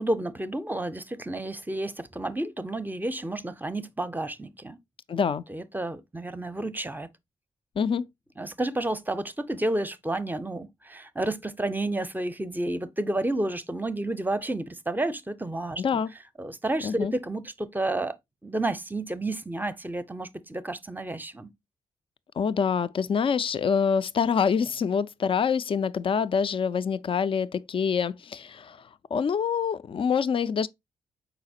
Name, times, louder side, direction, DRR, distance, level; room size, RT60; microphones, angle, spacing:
voice 1, 0.0-4.8 5.5-7.1 8.4-15.8 16.4-18.1 18.4-21.5, right 1 dB, 15° right, 0.6 m, -31 dB
voice 2, 5.1-5.5 7.8-8.1 15.8-16.1 16.8-17.1 22.4-30.7, left 6 dB, 40° left, 0.4 m, -26 dB
5.0 x 4.0 x 2.6 m
supercardioid pair, 45°, 14 cm